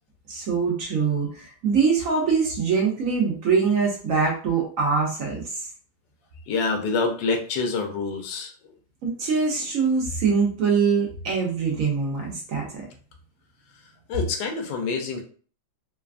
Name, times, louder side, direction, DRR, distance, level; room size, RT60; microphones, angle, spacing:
voice 1, 0.3-5.7 9.0-12.9, right 5 dB, 70° right, -1 dB, 0.8 m, -23 dB
voice 2, 6.5-8.5 14.1-15.2, left 4 dB, 70° left, 3 dB, 1.2 m, -26 dB
3.2 x 2.3 x 2.4 m, 0.42 s
omnidirectional pair, 2.1 m